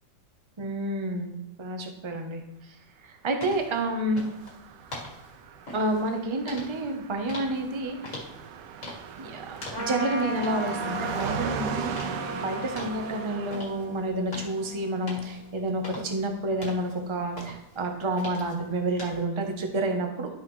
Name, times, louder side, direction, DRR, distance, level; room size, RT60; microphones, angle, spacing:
voice 1, 0.6-2.8 3.0-4.2 5.7-8.2 9.2-20.3, right 2 dB, 25° right, 4 dB, 0.6 m, -29 dB
sound 1, 3.4-19.2, left 2 dB, 45° left, 2.2 m, -44 dB
Car passing by, 3.7-13.6, right 8 dB, 80° right, 1.3 m, -38 dB
Trumpet, 9.7-15.5, left 1 dB, 60° right, 2.7 m, -37 dB
11.5 x 5.6 x 3.2 m, 0.93 s
omnidirectional pair, 1.9 m